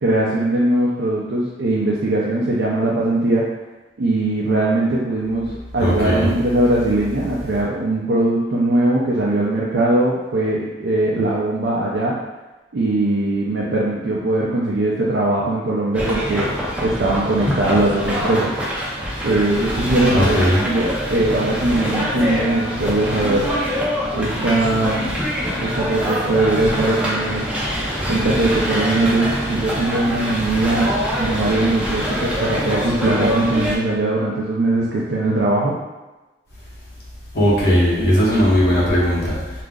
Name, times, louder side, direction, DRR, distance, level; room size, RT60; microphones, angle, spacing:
voice 1, 0.0-3.4 4.0-12.1 12.7-16.5 16.8-18.6 19.2-23.5 24.1-25.1 25.6-27.5 28.1-30.9 31.2-35.7, right 2 dB, 65° right, -5 dB, 0.4 m, -20 dB
voice 2, 5.8-6.3 20.1-20.6 37.3-39.6, equal, 55° left, -7 dB, 0.8 m, -17 dB
sound 1, 15.9-33.8, equal, 5° right, 0.4 m, -24 dB
2.4 x 2.0 x 3.5 m, 1.1 s
head